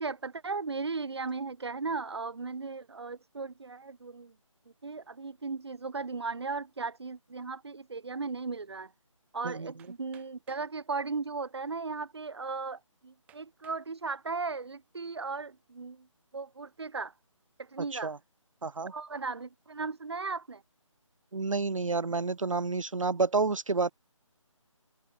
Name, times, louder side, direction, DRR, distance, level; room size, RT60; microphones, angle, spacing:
voice 1, 0.0-4.3 4.8-8.9 9.3-16.1 16.3-17.1 17.6-18.1 18.9-20.6, right 4 dB, 55° right, 1.0 m, -36 dB
Hammer, 9.8-10.7 11.6-11.7 12.3-12.4 13.3-13.9 14.5-14.9, right 12 dB, 10° right, 7.5 m, -62 dB
voice 2, 18.6-18.9 21.3-23.9, right 4 dB, 75° right, 0.6 m, -29 dB
figure-of-eight pair, 155°, 17 cm